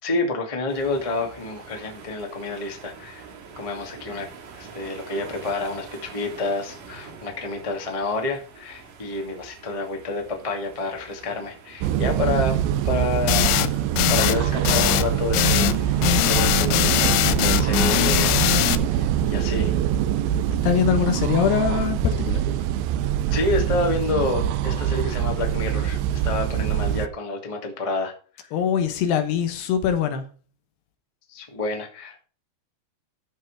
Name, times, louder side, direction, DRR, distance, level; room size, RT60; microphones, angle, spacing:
voice 1, 0.0-3.2 3.5-4.3 4.5-12.6 12.8-13.8 14.1-18.5 18.9-19.8 23.3-28.1 28.4-28.5 31.3-32.3, left 3 dB, 25° left, 0.7 m, -29 dB
sound 1, 0.7-19.1, right 5 dB, 55° right, 3.0 m, -45 dB
sound 2, 11.8-27.1, right 11 dB, 90° right, 2.1 m, -24 dB
sound 3, 13.3-13.7 14.0-14.4 14.6-15.1 15.3-15.8 16.0-18.8, left 15 dB, 85° left, 3.0 m, -21 dB
voice 2, 20.6-22.4 28.5-30.3, left 8 dB, 70° left, 3.1 m, -22 dB
13.5 x 5.5 x 4.7 m
omnidirectional pair, 5.2 m